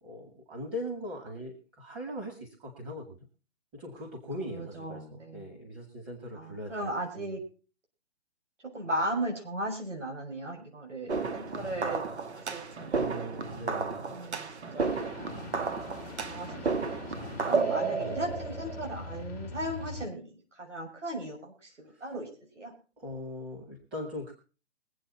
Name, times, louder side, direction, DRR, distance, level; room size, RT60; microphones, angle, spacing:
voice 1, 0.0-3.2 3.7-7.4 12.9-14.1 17.6-18.0 23.0-24.3, equal, 20° right, 1 dB, 2.1 m, -40 dB
voice 2, 4.4-5.5 6.3-7.4 8.7-12.0 12.3-13.7 14.1-15.3 16.2-17.1 17.4-22.3 22.6-22.7, right 1 dB, 85° right, 1 dB, 6.3 m, -37 dB
sound 1, 11.1-19.2, right 4 dB, 65° right, 1.7 m, -33 dB
sound 2, 14.8-20.1, left 3 dB, 5° left, 0.8 m, -43 dB
22.5 x 8.1 x 4.2 m, 0.36 s
hypercardioid pair, 160°, 35 cm